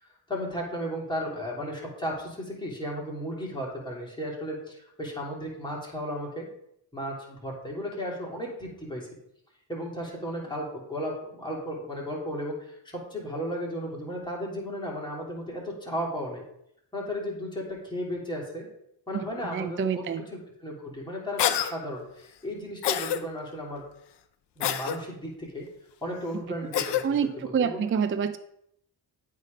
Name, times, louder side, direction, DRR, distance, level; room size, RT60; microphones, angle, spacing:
voice 1, 0.0-6.5 6.9-9.1 9.7-16.4 16.9-18.7 19.1-23.8 24.6-25.7 26.0-27.8, equal, 10° left, -3 dB, 3.0 m, -35 dB
voice 2, 19.4-20.2 27.0-28.4, right 7 dB, 30° right, 10 dB, 0.4 m, -27 dB
Cough, 21.4-21.7 22.8-23.2 24.6-25.0 26.7-27.0, left 10 dB, 65° left, 0.7 m, -26 dB
8.0 x 3.6 x 5.3 m, 0.76 s
cardioid pair, 60°, 46 cm